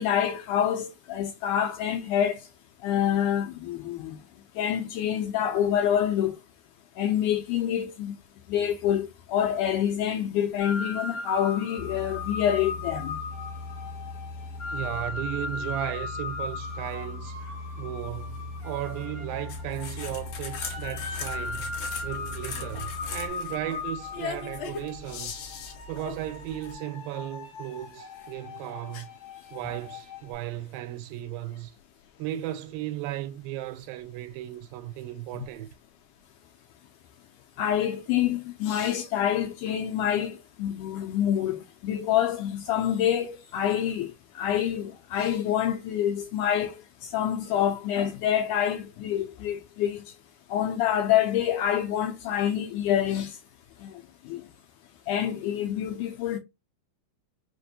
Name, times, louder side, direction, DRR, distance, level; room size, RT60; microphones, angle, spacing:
voice 1, 0.0-2.4 2.8-4.2 4.6-6.4 7.0-8.1 8.5-13.2 28.9-29.0 37.6-50.0 50.5-53.4 53.8-54.4 55.1-56.4, left 10 dB, 80° left, 1.9 m, -27 dB
sound 1, 10.6-30.3, left 4 dB, 50° left, 1.6 m, -38 dB
Boat Water vehicle, 11.8-23.3, left 2 dB, 30° left, 1.6 m, -40 dB
voice 2, 14.7-21.7 22.0-25.4 25.9-29.1 29.5-31.7 32.2-35.7, right 14 dB, 85° right, 2.3 m, -35 dB
sound 2, 19.5-26.7, left 5 dB, 65° left, 1.7 m, -39 dB
5.9 x 2.5 x 2.7 m
omnidirectional pair, 4.1 m